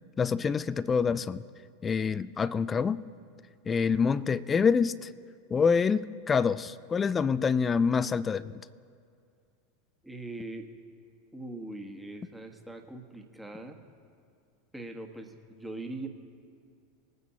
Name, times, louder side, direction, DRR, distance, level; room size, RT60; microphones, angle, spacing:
voice 1, 0.2-1.4 1.8-3.0 3.7-5.1 5.5-8.6, left 5 dB, 20° left, 18 dB, 0.3 m, -26 dB
voice 2, 10.0-10.7 11.3-13.8 14.7-16.1, right 2 dB, 5° right, 3 dB, 1.4 m, -41 dB
21.5 x 9.4 x 2.8 m, 2.3 s
figure-of-eight pair, 85°, 0 cm